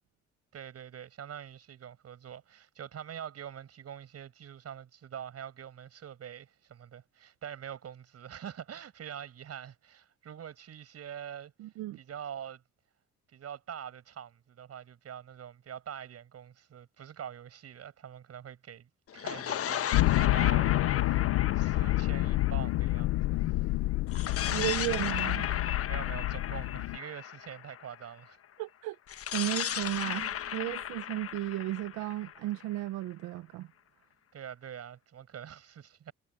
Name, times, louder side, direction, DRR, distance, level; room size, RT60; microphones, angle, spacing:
voice 1, 0.5-11.5 12.0-12.6 13.3-23.4 25.9-28.4 34.3-36.1, right 9 dB, 55° right, 7.8 m, -45 dB
voice 2, 11.6-12.0 24.5-25.5 28.6-29.0 29.3-33.7, right 17 dB, 80° right, 1.4 m, -34 dB
sound 1, 19.1-23.5 24.1-28.0 29.1-32.9, left 10 dB, 50° left, 1.2 m, -35 dB
sound 2, 19.9-27.0, left 17 dB, 75° left, 0.9 m, -28 dB
supercardioid pair, 70°, 30 cm